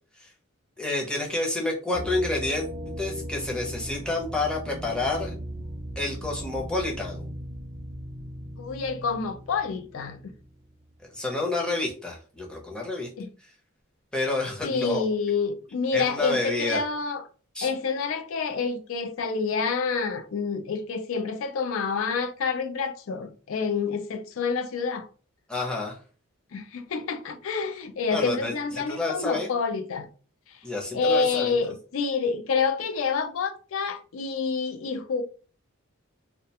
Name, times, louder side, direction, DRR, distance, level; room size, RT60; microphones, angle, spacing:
voice 1, 0.8-2.7 3.0-5.3 6.0-7.3 11.1-13.1 14.1-15.0 15.9-16.8 17.5-17.7 25.5-26.0 28.1-29.5 30.6-31.6, left 2 dB, 5° left, 0.6 m, -29 dB
sound 1, 1.9-10.6, equal, 40° right, 0.5 m, -38 dB
voice 2, 8.6-10.3 13.2-13.3 14.6-17.2 17.6-25.1 26.5-30.1 30.9-35.2, left 5 dB, 65° left, 0.4 m, -28 dB
2.3 x 2.1 x 2.7 m
head